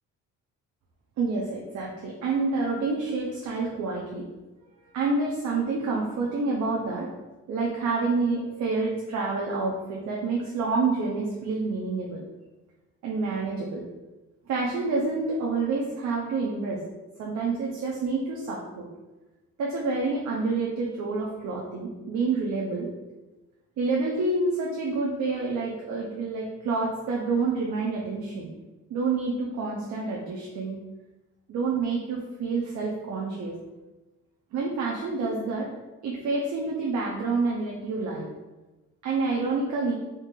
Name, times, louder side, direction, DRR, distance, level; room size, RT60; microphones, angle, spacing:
voice 1, 1.2-4.3 4.9-7.1 7.5-12.3 13.0-13.8 14.5-16.8 17.2-18.9 19.6-22.9 23.8-28.5 28.9-30.8 31.5-33.5 34.5-35.7 36.0-38.3 39.0-39.9, right 3 dB, 70° right, -3 dB, 0.7 m, -28 dB
3.6 x 2.7 x 3.8 m, 1.1 s
cardioid pair, 90°, 30 cm